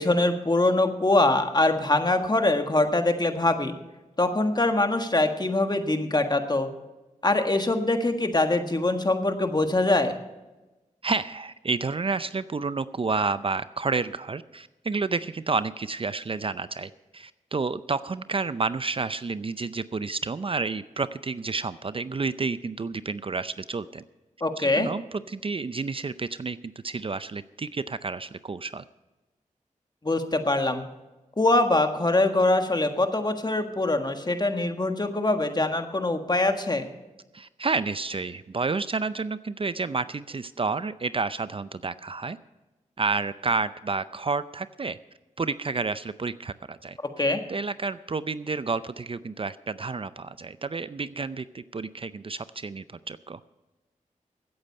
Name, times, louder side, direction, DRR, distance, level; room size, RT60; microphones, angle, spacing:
voice 1, 0.0-3.7 4.2-6.7 7.2-10.1 24.4-24.9 30.0-30.8 31.4-36.9 47.2-47.4, left 2 dB, 30° left, 6 dB, 1.5 m, -23 dB
voice 2, 11.0-24.0 24.6-28.8 37.3-42.4 43.0-45.0 45.4-47.0 47.5-53.4, right 4 dB, 40° right, 14 dB, 0.5 m, -30 dB
16.0 x 8.8 x 5.5 m, 1.1 s
cardioid pair, 55°, 13 cm